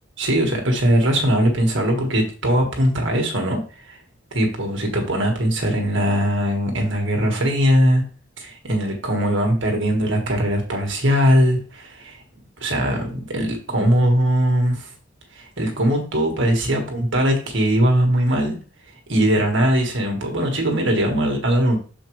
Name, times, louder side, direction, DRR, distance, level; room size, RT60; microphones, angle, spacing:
voice 1, 0.2-4.0 4.3-8.0 8.4-12.2 12.6-14.9 15.3-18.6 19.1-21.8, equal, 65° right, 2 dB, 1.7 m, -20 dB
7.1 x 5.1 x 3.2 m, 0.38 s
head